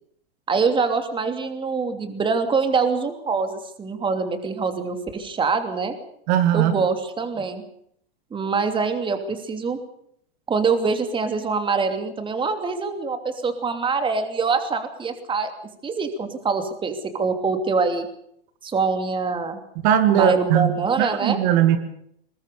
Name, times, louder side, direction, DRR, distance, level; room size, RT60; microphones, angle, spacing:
voice 1, 0.5-5.9 6.5-7.6 8.3-9.8 10.5-15.5 15.8-18.1 18.6-19.6 20.1-21.4, right 4 dB, 15° right, 7 dB, 2.9 m, -24 dB
voice 2, 6.3-6.8 19.8-21.8, right 10 dB, 50° right, 9 dB, 2.4 m, -19 dB
22.0 x 21.0 x 6.8 m, 0.69 s
hypercardioid pair, 120°, 30 cm